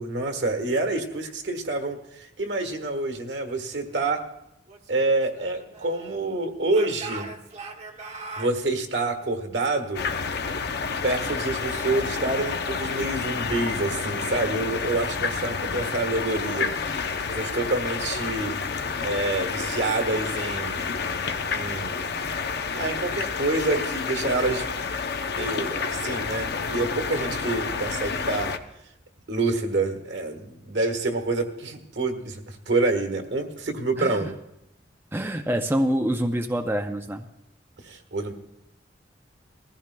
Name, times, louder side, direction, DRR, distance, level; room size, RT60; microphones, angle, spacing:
voice 1, 0.0-4.2 4.9-7.3 8.4-10.0 11.0-16.7 17.2-18.6 19.0-20.9 21.5-22.4 22.7-24.7 25.3-28.5 29.3-34.3 37.8-38.3, right 2 dB, 75° right, 5 dB, 1.4 m, -27 dB
Speech / Shout, 4.7-6.2 6.7-8.6, right 3 dB, 40° right, 1.0 m, -40 dB
sound 1, 9.9-28.6, left 5 dB, 65° left, 0.7 m, -29 dB
voice 2, 34.0-34.3 35.1-37.3, equal, 10° right, 4 dB, 0.5 m, -26 dB
20.5 x 14.5 x 2.2 m, 0.85 s
head